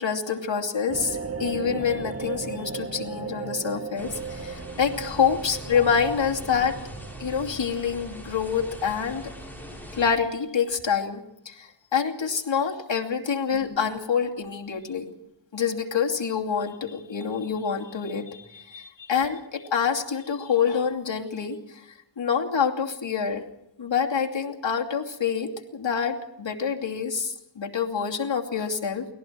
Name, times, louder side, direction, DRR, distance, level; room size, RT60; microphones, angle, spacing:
voice 1, 0.0-6.8 7.2-9.3 9.9-15.1 15.5-23.4 23.8-29.1, left 6 dB, 90° left, 0 dB, 2.8 m, -27 dB
sound 1, 0.9-9.8, right 5 dB, 35° right, 1.3 m, -37 dB
sound 2, 3.9-10.1, equal, 5° left, 8.0 m, -42 dB
29.0 x 20.5 x 4.6 m, 0.81 s
wide cardioid pair, 90°, 44 cm